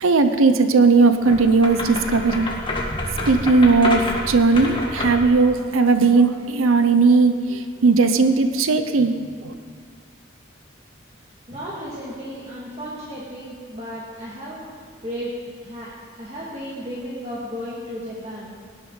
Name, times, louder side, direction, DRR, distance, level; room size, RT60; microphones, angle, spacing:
voice 1, 0.0-2.5 3.2-9.1 9.4-9.5, right 4 dB, 90° right, 9 dB, 0.7 m, -17 dB
sound 1, 1.2-5.3, left 1 dB, 25° left, 1.7 m, -28 dB
voice 2, 11.5-14.6 15.0-15.3 15.6-15.9 16.2-18.6, equal, 30° right, -7 dB, 2.1 m, -34 dB
18.5 x 11.5 x 3.9 m, 2.1 s
head